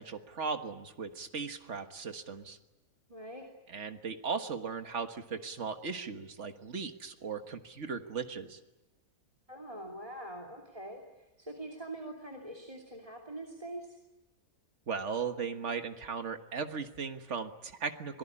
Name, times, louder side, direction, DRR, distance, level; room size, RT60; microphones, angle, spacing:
voice 1, 0.0-2.6 3.7-8.6 14.9-18.2, right 5 dB, 55° right, 7 dB, 1.8 m, -37 dB
voice 2, 3.1-3.5 9.5-14.0, right 1 dB, 25° right, 2 dB, 2.9 m, -44 dB
26.0 x 18.5 x 9.9 m, 1.0 s
omnidirectional pair, 1.5 m